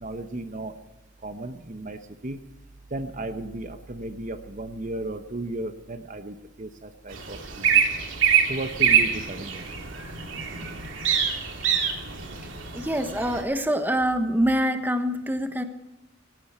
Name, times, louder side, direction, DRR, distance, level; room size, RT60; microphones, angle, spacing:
voice 1, 0.0-0.7 1.2-2.4 2.9-7.8 8.5-9.6, right 2 dB, 40° right, 9 dB, 1.0 m, -35 dB
sound 1, 7.1-13.4, right 8 dB, 80° right, 2.9 m, -25 dB
voice 2, 12.7-15.6, equal, 10° right, 7 dB, 1.2 m, -25 dB
18.5 x 15.5 x 4.4 m, 1.0 s
head